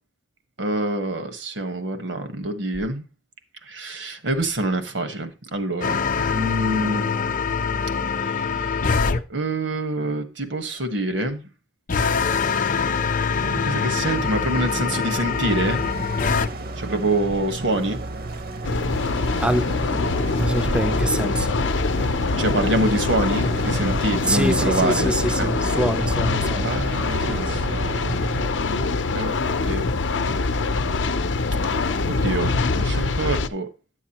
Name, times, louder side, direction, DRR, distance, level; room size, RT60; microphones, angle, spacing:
voice 1, 0.6-3.0 3.7-6.0 6.3-7.0 9.3-11.5 13.6-15.8 16.8-18.0 22.4-25.5 26.6-27.8 28.6-29.3 29.6-29.8 32.1-33.7, right 1 dB, 85° right, 1.3 m, -26 dB
sound 1, 5.8-9.2 11.9-16.5, left 5 dB, 45° left, 0.5 m, -24 dB
sound 2, 13.4-28.5, right 2 dB, 55° right, 0.6 m, -33 dB
sound 3, 18.6-33.5, left 3 dB, 85° left, 0.6 m, -24 dB
voice 2, 19.4-20.0 20.4-21.7 24.3-26.7, right 1 dB, 5° right, 0.3 m, -25 dB
10.5 x 7.1 x 2.9 m
head